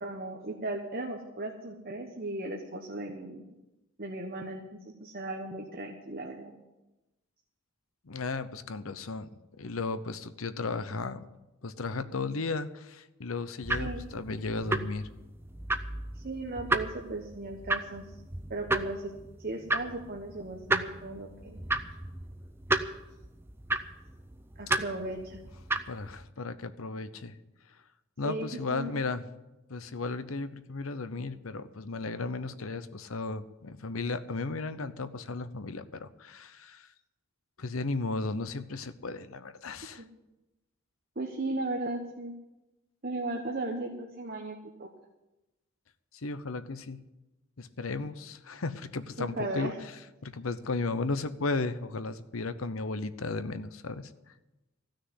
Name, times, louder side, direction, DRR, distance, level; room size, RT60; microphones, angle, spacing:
voice 1, 0.0-3.5 4.0-6.5 13.7-14.0 16.1-18.1 18.5-19.1 19.4-21.6 24.6-25.4 28.2-29.0 40.0-40.1 41.2-42.3 43.0-44.9 49.2-49.8, right 2 dB, 45° right, 1 dB, 1.2 m, -36 dB
voice 2, 8.1-9.3 9.6-11.2 11.6-15.1 24.7-24.8 25.9-27.3 28.2-29.2 29.7-36.9 37.6-40.0 46.2-47.0 47.6-49.7 50.2-54.1, left 3 dB, 85° left, 12 dB, 0.8 m, -35 dB
sound 1, 13.6-26.2, right 2 dB, 10° right, 0.6 m, -34 dB
15.0 x 6.5 x 9.8 m, 1.0 s
head